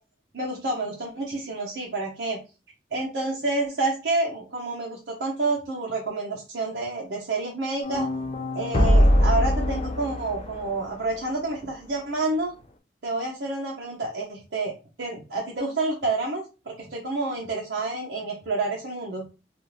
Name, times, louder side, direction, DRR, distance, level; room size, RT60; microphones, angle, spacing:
voice 1, 0.3-2.4 2.9-8.1 8.5-12.5 13.0-19.2, right 2 dB, 80° right, -1 dB, 0.7 m, -29 dB
sound 1, 7.8-11.1, equal, 35° left, 0.4 m, -22 dB
2.4 x 2.4 x 3.1 m, 0.31 s
head